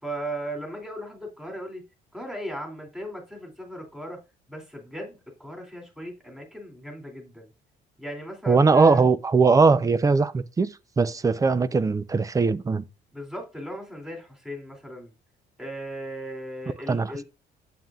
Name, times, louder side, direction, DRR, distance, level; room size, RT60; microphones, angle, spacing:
voice 1, 0.0-1.8 2.1-4.2 4.5-7.5 8.0-9.0 13.1-15.1 15.6-17.2, right 1 dB, 5° right, 2.8 m, -37 dB
voice 2, 8.5-10.7 11.0-12.8 16.9-17.1, right 4 dB, 20° right, 0.6 m, -20 dB
9.2 x 7.7 x 2.4 m
cardioid pair, 110°, 17 cm